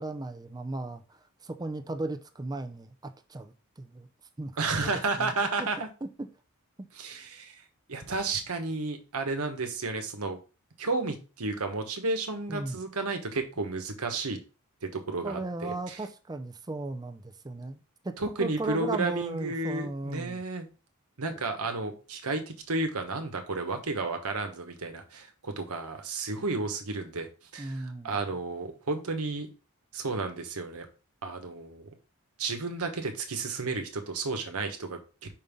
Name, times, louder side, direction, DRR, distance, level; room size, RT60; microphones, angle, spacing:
voice 1, 0.0-4.1 4.4-4.9 5.2-5.3 5.6-6.3 6.8-6.9 11.0-11.1 12.5-12.8 15.2-17.8 18.0-20.4 27.6-28.2, right 2 dB, 20° right, 0.5 m, -36 dB
voice 2, 4.6-5.9 7.0-7.5 7.9-10.4 10.8-14.4 14.8-16.0 18.2-20.7 21.2-27.3 27.5-29.5 29.9-30.9 31.2-31.9 32.4-35.0, right 3 dB, 85° right, 1.2 m, -32 dB
5.4 x 5.4 x 3.6 m
head